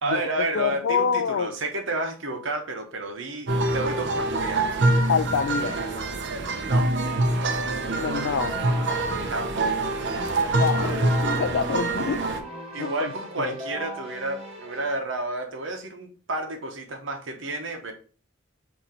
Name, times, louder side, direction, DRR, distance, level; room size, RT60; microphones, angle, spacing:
voice 1, 0.0-4.8 6.7-6.9 9.3-9.9 12.7-17.9, right 2 dB, 80° right, 1.0 m, -31 dB
voice 2, 0.5-1.5 5.1-5.8 7.9-8.6 10.5-12.5 12.8-13.1 13.4-13.5, left 6 dB, 70° left, 0.4 m, -26 dB
sound 1, 3.5-12.4, right 2 dB, 65° right, 0.6 m, -25 dB
Keyboard (musical), 8.4-14.9, right 1 dB, 30° right, 1.1 m, -39 dB
4.3 x 2.8 x 3.8 m
head